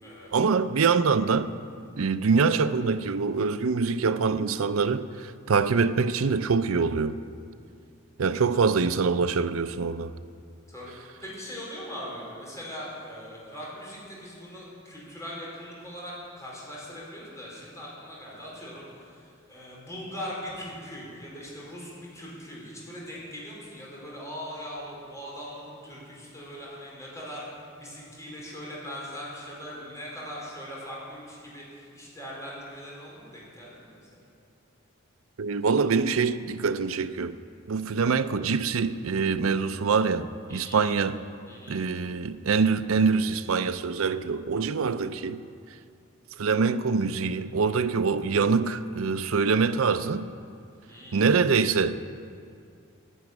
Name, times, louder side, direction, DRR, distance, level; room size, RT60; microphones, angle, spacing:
voice 1, 0.3-1.5 2.0-7.2 8.2-10.1 35.4-37.4 37.7-41.2 41.7-45.4 46.4-50.3 51.1-52.0, right 5 dB, 85° right, 0.6 m, -24 dB
voice 2, 10.7-27.5 27.8-34.0 40.5-40.9 41.5-41.8 50.9-51.3, equal, 15° left, 4.7 m, -40 dB
11.0 x 11.0 x 9.3 m
head